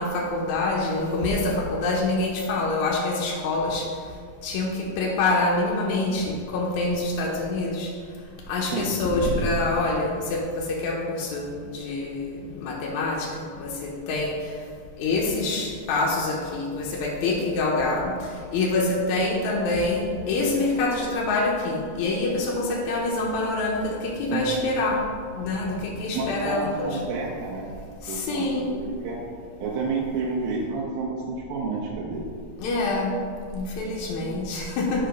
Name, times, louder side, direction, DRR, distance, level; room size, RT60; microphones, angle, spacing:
voice 1, 0.0-3.9 4.4-7.9 8.5-13.3 13.6-14.4 15.0-25.0 25.4-27.0 28.0-28.7 32.6-33.1 33.5-35.1, left 2 dB, 75° left, -2 dB, 1.7 m, -26 dB
voice 2, 26.1-27.7 28.1-29.2 29.6-32.3, right 4 dB, 85° right, -3 dB, 2.5 m, -30 dB
5.6 x 4.9 x 5.1 m, 2.1 s
omnidirectional pair, 4.0 m